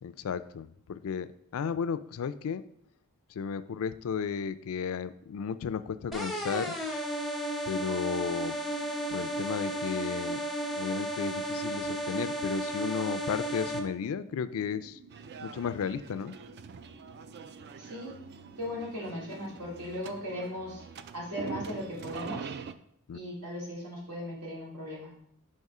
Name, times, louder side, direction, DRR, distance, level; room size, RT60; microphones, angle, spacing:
voice 1, 0.0-2.6 3.3-6.8 7.7-8.6 9.1-10.4 10.8-15.0 15.4-16.4 23.1-23.2, left 6 dB, 65° left, 13 dB, 0.4 m, -34 dB
sound 1, 6.1-13.8, right 1 dB, ahead, 0.6 m, -33 dB
sound 2, 8.5-19.8, right 2 dB, 65° right, 1.0 m, -54 dB
sound 3, 15.1-22.7, right 5 dB, 50° right, 0.3 m, -44 dB
voice 2, 17.8-18.1 18.6-20.8 21.1-22.5 23.1-25.1, left 1 dB, 85° right, -4 dB, 2.5 m, -38 dB
5.5 x 4.2 x 4.7 m, 0.70 s
head